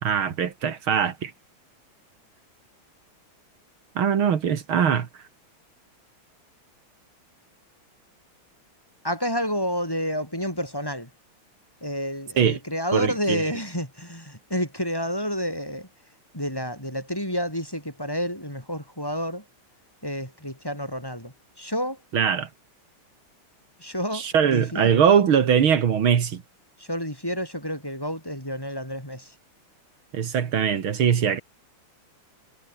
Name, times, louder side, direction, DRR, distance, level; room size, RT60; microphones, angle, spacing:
voice 1, 0.0-1.3 4.0-5.1 12.4-12.6 12.9-13.5 22.1-22.5 24.1-26.4 30.1-31.4, right 8 dB, 80° right, 2.5 m, -21 dB
voice 2, 9.0-11.1 11.8-15.9 16.3-19.4 20.0-22.0 23.8-25.0 26.8-29.4, equal, 10° left, 7.3 m, -30 dB
omnidirectional pair, 2.3 m